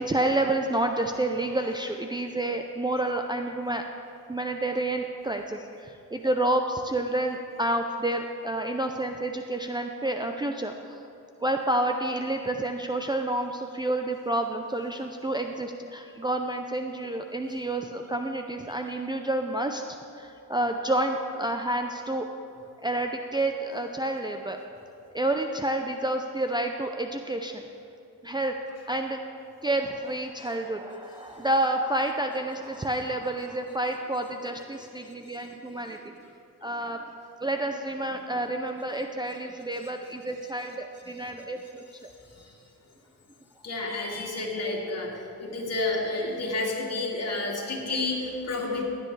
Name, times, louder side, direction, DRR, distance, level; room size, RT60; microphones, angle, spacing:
voice 1, 0.0-3.8 4.3-10.9 11.4-22.3 22.8-24.6 25.1-27.7 28.2-28.6 28.9-29.2 29.6-36.1 36.6-37.0 37.4-42.1, right 1 dB, 15° right, 4 dB, 0.5 m, -29 dB
voice 2, 43.6-45.1 45.4-48.8, left 2 dB, 45° left, -2 dB, 2.5 m, -30 dB
15.5 x 10.0 x 3.3 m, 2.7 s
cardioid pair, 90°, 34 cm